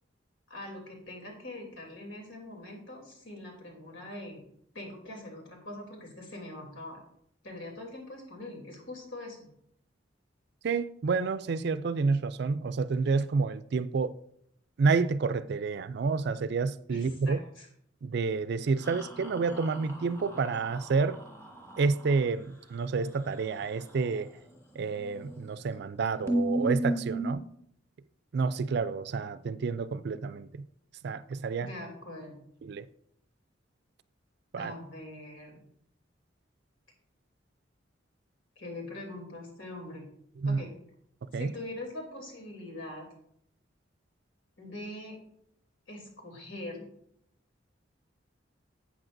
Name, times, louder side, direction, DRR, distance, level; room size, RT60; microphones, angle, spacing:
voice 1, 0.5-4.4 4.7-7.0 7.4-9.5 16.9-17.7 31.6-32.3 34.6-35.6 38.6-40.1 40.4-40.7 41.3-43.0 44.6-45.2 45.9-46.8, left 1 dB, 85° left, 3.0 m, -43 dB
voice 2, 10.6-14.1 14.8-17.4 18.0-21.2 21.8-24.3 24.8-27.4 28.3-30.6 31.0-31.7 32.6-32.9 34.5-34.7 40.4-40.6 41.3-41.5, right 4 dB, 60° right, 0.4 m, -29 dB
sound 1, 18.8-22.2 25.0-25.4 25.7-25.8 26.3-27.3, right 1 dB, 15° left, 1.5 m, -34 dB
12.0 x 8.5 x 2.6 m
head